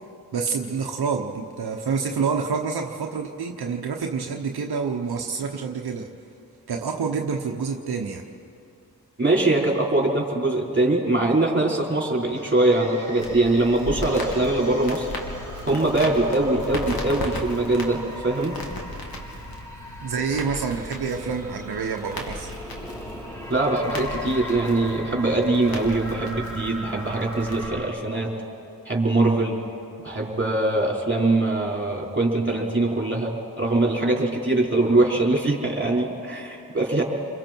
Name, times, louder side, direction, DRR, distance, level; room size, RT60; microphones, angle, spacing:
voice 1, 0.3-6.1 6.7-8.3 20.0-22.5, right 5 dB, 85° right, 2 dB, 1.1 m, -27 dB
voice 2, 9.2-15.1 15.7-18.5 23.5-28.3 28.8-29.6 30.0-37.0, right 2 dB, 30° right, -2 dB, 4.7 m, -22 dB
sound 1, 12.3-27.9, equal, 10° left, 4.2 m, -40 dB
Crackle, 13.2-27.7, left 1 dB, 70° left, 2.8 m, -37 dB
29.0 x 22.5 x 4.6 m, 2.5 s
cardioid pair, 55°, 37 cm